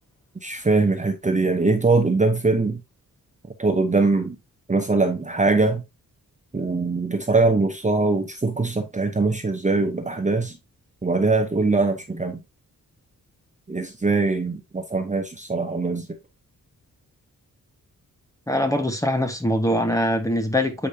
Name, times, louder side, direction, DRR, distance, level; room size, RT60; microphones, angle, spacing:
voice 1, 0.4-2.8 3.6-4.4 4.7-5.8 6.5-10.6 11.0-12.4 13.7-16.1, right 3 dB, 20° right, 0.9 m, -22 dB
voice 2, 18.5-20.9, left 1 dB, 10° left, 1.4 m, -23 dB
8.0 x 5.1 x 2.8 m
wide cardioid pair, 115°, 34 cm